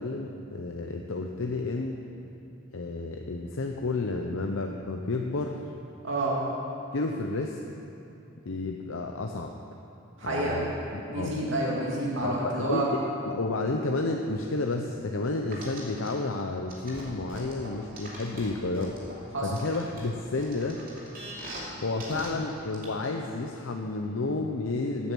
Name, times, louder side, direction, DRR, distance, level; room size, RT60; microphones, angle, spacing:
voice 1, 0.0-2.0 2.7-5.6 6.9-7.6 8.4-9.5 10.2-11.3 12.2-19.0 19.4-20.8 21.8-25.1, left 3 dB, 85° left, 2 dB, 0.7 m, -31 dB
voice 2, 6.0-6.4 10.2-10.6 11.1-12.8 19.3-19.5, right 2 dB, 70° right, -4 dB, 2.5 m, -29 dB
sound 1, 15.5-16.1 16.7-19.1 19.6-21.7 22.0-22.3 22.7-22.8, right 1 dB, 45° right, 2.9 m, -41 dB
16.5 x 8.6 x 6.2 m, 2.8 s
head